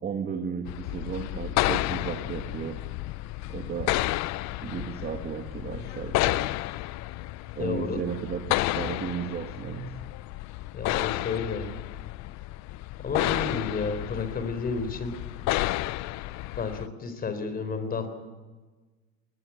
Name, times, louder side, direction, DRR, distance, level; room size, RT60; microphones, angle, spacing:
voice 1, 0.0-2.8 3.5-3.9 4.6-6.5 7.6-9.9, right 7 dB, 30° right, 5 dB, 2.1 m, -34 dB
sound 1, 0.7-16.9, left 17 dB, 60° left, 0.7 m, -31 dB
voice 2, 7.6-8.0 10.7-11.7 13.0-15.2 16.6-18.1, left 4 dB, 30° left, 10 dB, 3.9 m, -31 dB
20.5 x 20.0 x 8.6 m, 1.3 s
cardioid pair, 125°, 32 cm